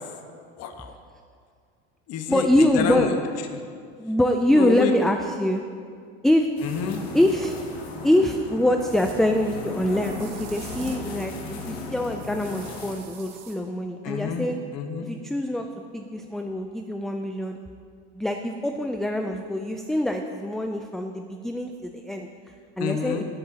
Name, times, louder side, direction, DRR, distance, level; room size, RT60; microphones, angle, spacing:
voice 1, 0.6-0.9 2.1-3.6 4.5-4.9 6.6-7.0 14.0-14.5 14.7-15.1 22.8-23.2, left 7 dB, 50° left, 5 dB, 1.3 m, -29 dB
voice 2, 2.3-3.1 4.0-5.6 6.2-6.5 7.1-7.5 8.0-14.6 15.0-15.7 15.9-17.6 18.1-22.3 22.8-23.2, left 1 dB, ahead, 4 dB, 0.4 m, -24 dB
sound 1, 6.6-12.9, left 3 dB, 85° left, 2.8 m, -36 dB
sound 2, 8.8-9.2 10.0-11.1 12.2-13.6, right 7 dB, 70° right, 1.6 m, -45 dB
17.0 x 8.4 x 2.8 m, 2.2 s
supercardioid pair, 105°, 31 cm